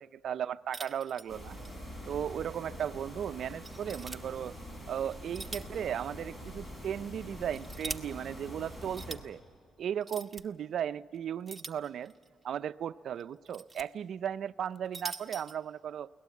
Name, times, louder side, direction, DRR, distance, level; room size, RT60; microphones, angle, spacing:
voice 1, 0.0-1.6 2.1-4.5 4.9-9.4 9.8-12.1 12.4-16.1, right 9 dB, 65° right, 15 dB, 0.4 m, -36 dB
sound 1, 0.7-1.8 2.1-2.2 2.8-2.9 3.6-4.2 5.1-5.8 6.1-6.2 7.2-8.0 8.8-9.2 10.0-10.4 11.5-12.3 13.2-13.8 14.7-15.5, right 3 dB, 15° right, 1.2 m, -43 dB
sound 2, 1.3-9.2, equal, 30° left, 7.0 m, -45 dB
23.0 x 18.0 x 8.3 m, 2.4 s
cardioid pair, 90°, 0 cm